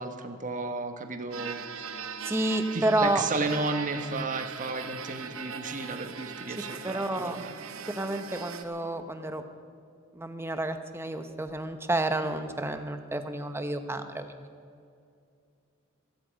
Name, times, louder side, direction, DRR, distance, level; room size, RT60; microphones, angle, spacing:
voice 1, 0.0-1.6 2.7-7.5, right 3 dB, 40° right, 6 dB, 1.3 m, -33 dB
sound 1, 1.3-8.6, right 6 dB, 75° right, 1.0 m, -40 dB
voice 2, 2.2-3.2 6.8-7.4 7.9-9.4 10.1-14.5, right 1 dB, 10° right, 8 dB, 0.9 m, -30 dB
16.0 x 15.0 x 5.2 m, 2.4 s
head